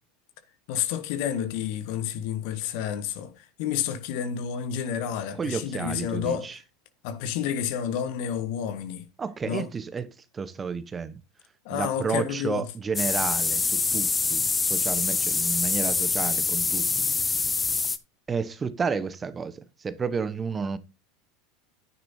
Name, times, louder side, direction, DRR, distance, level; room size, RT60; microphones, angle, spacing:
voice 1, 0.7-6.5 7.0-9.0 9.5-9.7 11.6-12.7, left 8 dB, 60° left, 1.4 m, -30 dB
voice 2, 5.4-6.6 9.2-11.2 11.7-17.3 18.3-20.8, right 5 dB, 25° right, 1.0 m, -31 dB
sound 1, 12.9-18.0, left 4 dB, 20° left, 1.0 m, -25 dB
10.0 x 9.6 x 2.8 m
hypercardioid pair, 85°, 0 cm